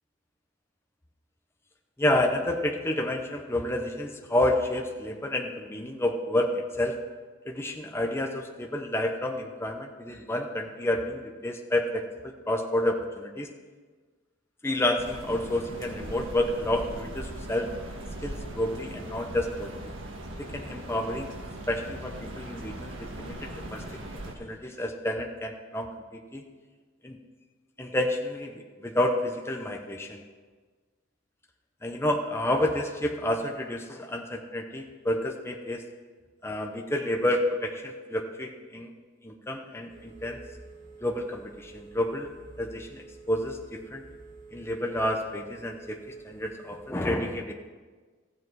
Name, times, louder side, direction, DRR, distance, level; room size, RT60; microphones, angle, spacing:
voice 1, 2.0-7.0 7.4-13.5 14.6-17.7 18.2-19.9 20.4-21.3 21.7-23.8 24.4-26.4 27.0-27.2 27.8-30.2 31.8-35.8 36.4-38.9 39.2-40.4 41.0-42.3 42.6-44.0 44.5-47.5, left 1 dB, 15° left, 3 dB, 0.7 m, -29 dB
sound 1, 15.0-24.3, right 1 dB, 70° right, 1.6 m, -40 dB
Telephone, 39.9-46.9, right 3 dB, 45° right, 3.1 m, -49 dB
14.5 x 7.7 x 4.7 m, 1.4 s
head